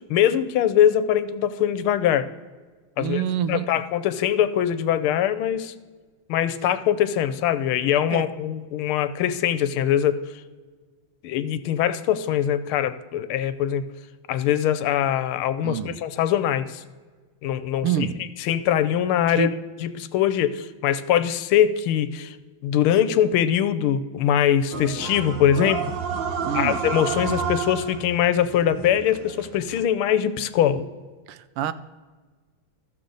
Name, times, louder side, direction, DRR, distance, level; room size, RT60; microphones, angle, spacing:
voice 1, 0.1-2.3 3.0-3.2 3.5-5.7 6.3-10.2 11.2-13.8 14.3-16.8 17.4-18.1 18.4-19.5 19.8-22.4 22.6-25.8 26.5-30.8, left 10 dB, 80° left, 13 dB, 1.4 m, -22 dB
voice 2, 3.0-3.8 8.1-8.3 15.6-16.0 17.8-18.3 19.3-19.5 26.4-26.8 31.3-31.7, right 9 dB, 85° right, 14 dB, 1.5 m, -27 dB
sound 1, 24.7-29.8, right 6 dB, 65° right, 1.4 m, -30 dB
14.0 x 6.8 x 3.9 m, 1.4 s
omnidirectional pair, 2.4 m